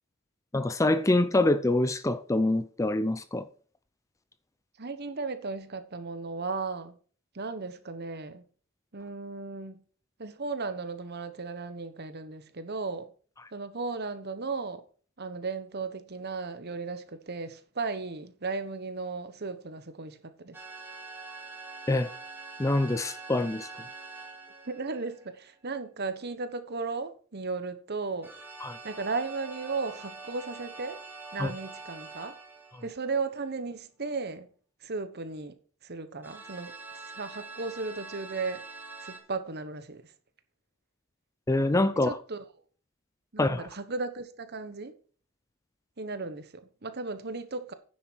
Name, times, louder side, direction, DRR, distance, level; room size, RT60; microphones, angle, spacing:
voice 1, 0.5-3.5 21.9-22.1 22.6-23.7 28.6-28.8 31.4-31.5 41.5-42.2 43.4-43.7, left 2 dB, 15° left, 0.4 m, -25 dB
voice 2, 4.8-6.9 7.3-8.4 8.9-9.8 10.2-13.1 13.5-14.8 15.2-20.6 24.6-28.3 28.8-31.0 31.3-32.3 32.8-34.5 34.8-35.5 35.8-36.7 37.1-38.6 39.0-40.0 42.0-42.4 43.3-44.9 46.0-47.7, right 4 dB, 50° right, 1.1 m, -35 dB
sound 1, 20.5-25.5 28.2-33.4 36.2-39.2, right 3 dB, 10° right, 1.6 m, -45 dB
9.9 x 7.4 x 4.6 m
head